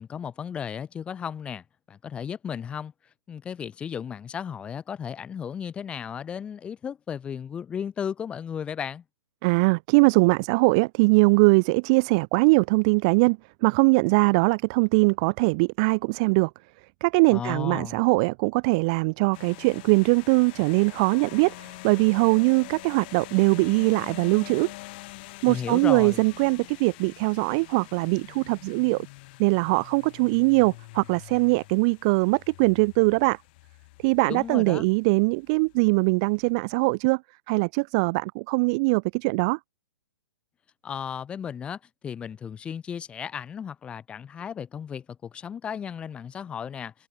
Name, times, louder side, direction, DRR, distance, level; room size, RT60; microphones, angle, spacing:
voice 1, 0.0-2.9 3.3-9.0 17.3-18.0 25.5-26.2 34.3-34.8 40.8-46.9, left 7 dB, 10° left, 5.4 m, -34 dB
voice 2, 9.4-16.5 17.0-24.7 25.4-29.1 29.4-33.4 34.0-37.2 37.5-39.6, right 29 dB, 15° right, 0.5 m, -21 dB
sound 1, 19.3-36.6, left 23 dB, 25° left, 6.0 m, -45 dB
hypercardioid pair, 175°, 13 cm